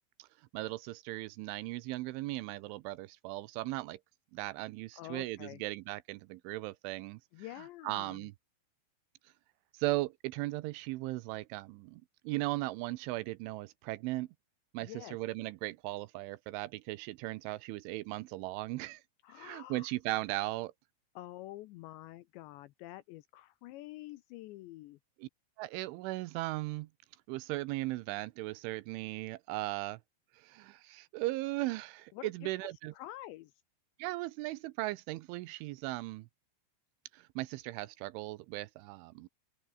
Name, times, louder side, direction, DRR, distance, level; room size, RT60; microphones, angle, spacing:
voice 1, 0.5-4.0 4.3-7.2 7.8-8.3 9.8-14.3 14.7-19.0 19.4-20.7 25.2-25.3 25.6-26.9 27.3-30.0 30.3-32.9 34.0-36.3 37.1-39.3, right 19 dB, 85° right, 3.0 m, -37 dB
voice 2, 5.0-5.6 7.3-8.3 14.8-15.2 19.2-19.9 21.2-25.0 32.1-32.5 32.9-33.5, left 16 dB, 80° left, 2.7 m, -47 dB
open air
omnidirectional pair, 5.8 m